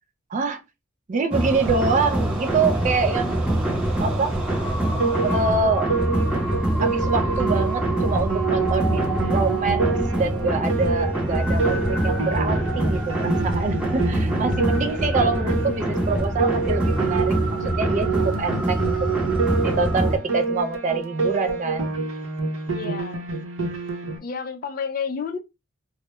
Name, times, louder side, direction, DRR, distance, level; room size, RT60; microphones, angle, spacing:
voice 1, 0.3-0.6 1.1-3.4 4.0-4.5 5.2-6.0 6.8-19.0 19.6-21.9, right 4 dB, 35° right, 0.3 m, -25 dB
sound 1, 1.3-20.2, right 1 dB, 5° right, 0.7 m, -24 dB
Piano, 5.0-24.2, right 4 dB, 75° right, 0.6 m, -28 dB
voice 2, 22.7-23.2 24.2-25.4, left 6 dB, 45° left, 0.4 m, -30 dB
2.2 x 2.0 x 2.8 m
head